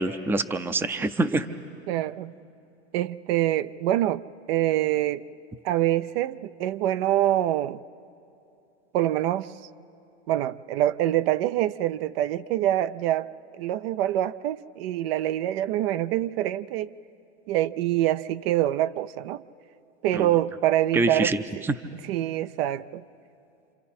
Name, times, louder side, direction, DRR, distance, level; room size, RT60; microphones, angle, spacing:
voice 1, 0.0-1.5 20.1-20.3 20.9-21.4 21.6-21.7, right 2 dB, 5° right, 12 dB, 0.6 m, -25 dB
voice 2, 1.9-2.3 2.9-4.2 4.5-5.2 5.6-7.8 8.9-9.5 10.3-16.9 17.5-19.4 20.0-21.3 22.1-23.0, right 13 dB, 60° right, 14 dB, 0.6 m, -25 dB
27.5 x 26.5 x 4.3 m, 2.7 s
hypercardioid pair, 115°, 34 cm